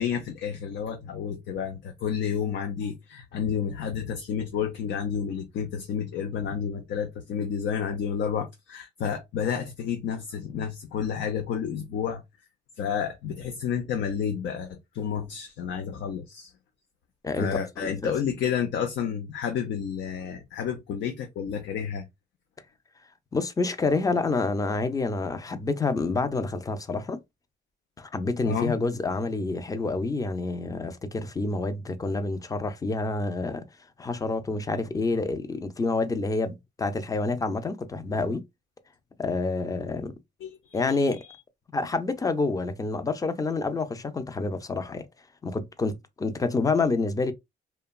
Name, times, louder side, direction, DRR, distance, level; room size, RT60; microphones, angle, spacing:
voice 1, 0.0-12.2 12.8-16.5 17.4-22.0 28.4-28.7 40.4-40.8, left 7 dB, 70° left, 0.5 m, -30 dB
voice 2, 17.2-18.1 23.3-27.2 28.0-33.6 34.0-38.4 39.2-40.1 40.7-41.2 41.7-45.0 45.4-47.3, left 3 dB, 15° left, 0.5 m, -28 dB
2.9 x 2.2 x 2.2 m
cardioid pair, 90°, 20 cm